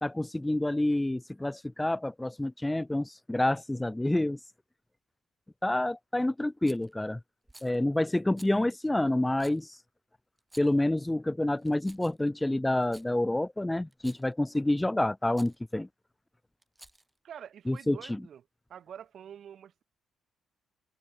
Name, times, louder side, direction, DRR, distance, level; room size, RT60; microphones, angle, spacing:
voice 1, 0.0-4.4 5.6-7.2 7.6-9.8 10.6-15.9 17.7-18.2, left 1 dB, 10° left, 0.3 m, -28 dB
Rattle, 6.6-6.9 7.5-7.8 8.4-8.6 9.4-9.6 10.4-10.8 11.6-12.3 12.8-13.1 13.9-14.3 15.3-15.6 16.6-17.2, right 2 dB, 10° right, 7.1 m, -54 dB
voice 2, 17.2-18.4 18.7-19.8, right 9 dB, 60° right, 6.5 m, -46 dB
cardioid pair, 90°, 0 cm